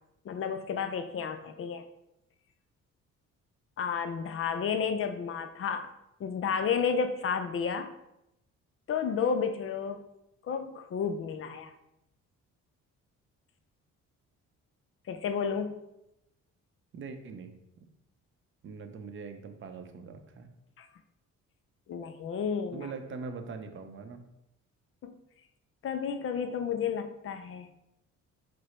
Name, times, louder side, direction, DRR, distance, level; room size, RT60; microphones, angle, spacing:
voice 1, 0.3-1.8 3.8-5.9 6.2-7.9 8.9-10.0 10.5-11.7 15.1-15.8 20.8-20.9 21.9-22.9 25.0-25.1 25.8-27.7, left 6 dB, 45° left, 8 dB, 0.4 m, -31 dB
voice 2, 16.9-17.9 18.6-20.5 22.7-24.2, right 4 dB, 40° right, 7 dB, 0.6 m, -42 dB
4.7 x 2.0 x 4.2 m, 0.85 s
cardioid pair, 90°, 30 cm